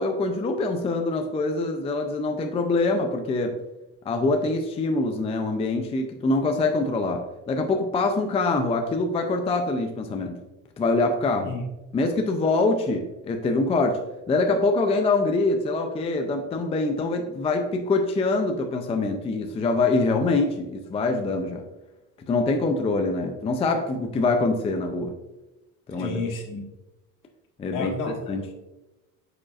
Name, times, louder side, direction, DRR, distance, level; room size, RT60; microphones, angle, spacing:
voice 1, 0.0-3.5 4.1-7.2 7.5-10.4 10.8-11.5 11.9-14.0 14.3-21.6 22.3-25.1 25.9-26.2 27.6-27.9 28.3-28.4, left 3 dB, 15° left, 4 dB, 0.4 m, -24 dB
voice 2, 26.0-26.6 27.7-28.5, left 3 dB, 60° left, 0 dB, 1.6 m, -31 dB
8.6 x 5.0 x 2.4 m, 1.0 s
cardioid pair, 140°, 35 cm